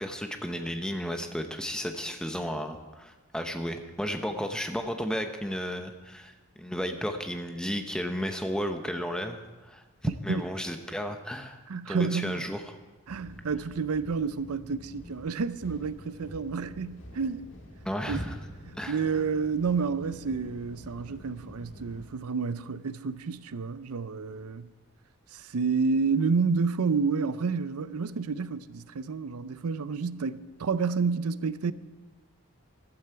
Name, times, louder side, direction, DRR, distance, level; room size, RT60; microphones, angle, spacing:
voice 1, 0.0-6.3 6.6-11.6 11.9-12.8 17.8-18.4 18.8-19.0, equal, 5° left, 0.8 m, -33 dB
voice 2, 11.7-12.4 13.1-17.5 18.1-18.2 18.9-24.7 25.3-31.7, right 5 dB, 85° right, 0.5 m, -29 dB
sound 1, 13.1-22.1, left 1 dB, 55° left, 2.1 m, -48 dB
14.5 x 12.5 x 4.6 m
head